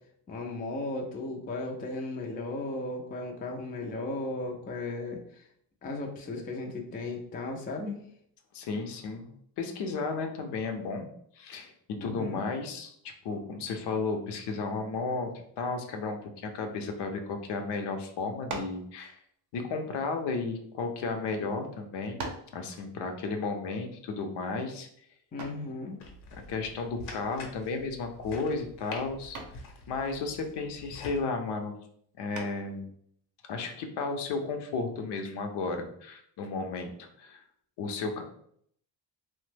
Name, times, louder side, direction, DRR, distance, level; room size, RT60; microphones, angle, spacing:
voice 1, 0.3-5.5 5.8-8.1 12.0-12.5 25.3-26.0, left 2 dB, 20° left, 1 dB, 0.3 m, -36 dB
voice 2, 8.5-11.1 11.3-11.7 12.0-12.9 13.2-19.2 19.5-22.2 22.5-24.9 26.5-29.4 29.9-31.7 32.2-32.9 33.5-37.4 37.8-38.2, left 4 dB, 65° left, 5 dB, 0.6 m, -33 dB
sound 1, 18.5-18.9 19.8-21.0 21.6-21.7 22.2-22.6 25.4-25.7 27.6-28.0 28.4-28.7 29.3-29.7 32.3-32.8, right 3 dB, 40° right, 0.6 m, -40 dB
sound 2, 26.0-31.2, left 2 dB, 85° left, 0.9 m, -46 dB
2.9 x 2.1 x 3.2 m, 0.67 s
cardioid pair, 125°, 44 cm